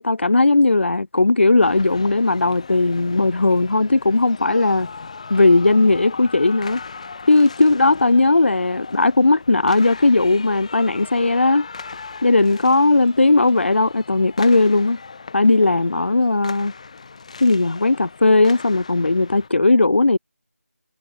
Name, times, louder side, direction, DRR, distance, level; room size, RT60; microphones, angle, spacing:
voice 1, 0.0-4.9 5.3-6.8 7.3-11.7 12.2-15.0 15.3-16.7 17.4-20.2, left 2 dB, 50° left, 0.8 m, -17 dB
sound 1, 1.6-19.5, left 4 dB, 25° left, 1.9 m, -38 dB
figure-of-eight pair, 175°, 8 cm